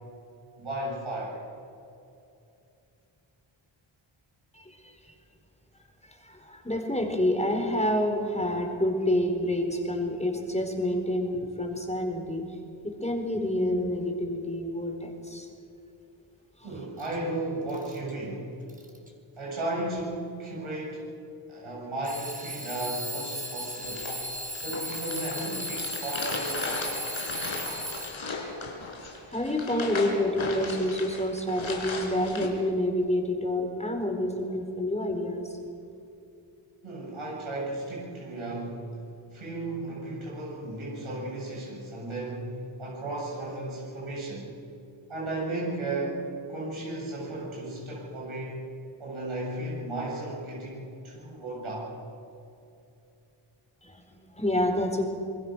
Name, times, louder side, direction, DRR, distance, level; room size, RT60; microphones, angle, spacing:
voice 1, 0.6-1.4 16.6-18.5 19.4-21.1 21.5-24.1 24.6-26.9 36.8-38.9 39.3-44.5 45.1-46.2 46.5-48.7 49.0-51.9, right 2 dB, 70° right, -4 dB, 7.3 m, -35 dB
voice 2, 4.5-5.1 6.1-12.5 12.8-15.5 16.6-16.7 29.3-35.5 53.8-55.1, left 1 dB, 15° left, 3 dB, 4.4 m, -28 dB
Alarm / Clock, 17.0-17.1 17.7-18.1 18.7-19.1 20.0-20.1 22.0-28.4, equal, 15° right, 4.1 m, -36 dB
sound 1, 23.8-32.5, left 3 dB, 70° left, 4.3 m, -36 dB
27.0 x 21.0 x 6.4 m, 2.7 s
cardioid pair, 70°, 50 cm